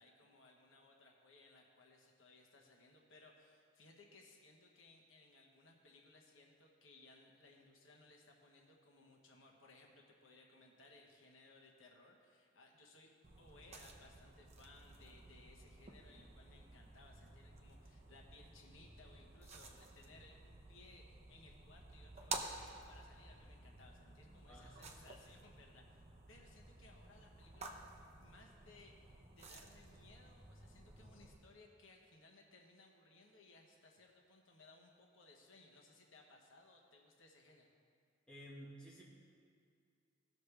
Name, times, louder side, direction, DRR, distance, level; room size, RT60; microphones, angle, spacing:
voice 1, 0.0-27.8 28.2-37.7, left 2 dB, 85° left, 0 dB, 1.2 m, -63 dB
sound 1, 13.2-31.4, right 3 dB, 35° right, 0.7 m, -53 dB
voice 2, 24.5-24.8 38.3-39.0, equal, 5° left, -7 dB, 1.5 m, -53 dB
17.5 x 6.6 x 3.3 m, 2.3 s
head